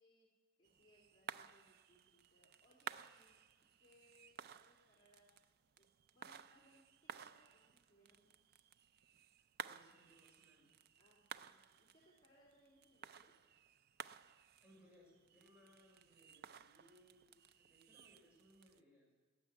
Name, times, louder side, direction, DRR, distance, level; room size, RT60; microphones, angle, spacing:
voice 1, 0.0-5.4 5.8-8.4 11.0-13.4, equal, 25° left, -5 dB, 2.9 m, -71 dB
sound 1, 0.6-18.8, right 8 dB, 50° right, 0.4 m, -56 dB
voice 2, 9.6-10.7 14.6-19.1, equal, 5° right, -4 dB, 5.8 m, -68 dB
18.5 x 7.4 x 10.0 m, 1.4 s
head